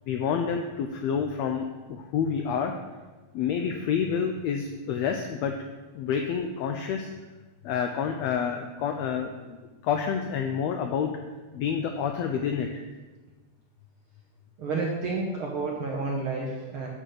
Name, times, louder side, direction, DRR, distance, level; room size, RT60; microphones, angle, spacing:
voice 1, 0.1-2.7 3.3-5.5 5.9-7.1 7.6-9.6 9.8-11.1 11.5-12.7, left 7 dB, 85° left, 4 dB, 1.5 m, -28 dB
voice 2, 14.6-16.9, right 3 dB, 65° right, -2 dB, 1.3 m, -30 dB
6.9 x 6.5 x 5.8 m, 1.3 s
omnidirectional pair, 3.5 m